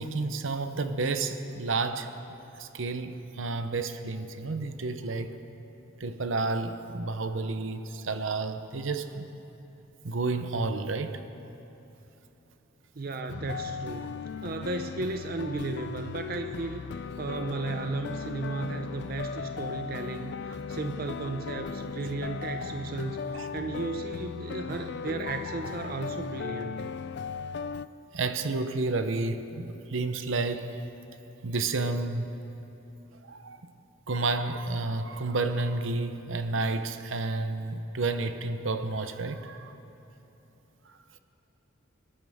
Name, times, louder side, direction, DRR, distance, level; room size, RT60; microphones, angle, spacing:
voice 1, 0.0-2.1 2.6-5.4 6.0-9.2 10.0-11.2 23.3-23.5 28.1-30.8 31.4-32.3 33.3-33.6 34.1-39.8, right 3 dB, 75° right, 0.8 m, -31 dB
voice 2, 13.0-16.8 17.2-26.9, right 3 dB, 50° right, 0.6 m, -35 dB
sound 1, 13.3-27.9, left 6 dB, 60° left, 0.3 m, -37 dB
26.0 x 12.5 x 3.6 m
head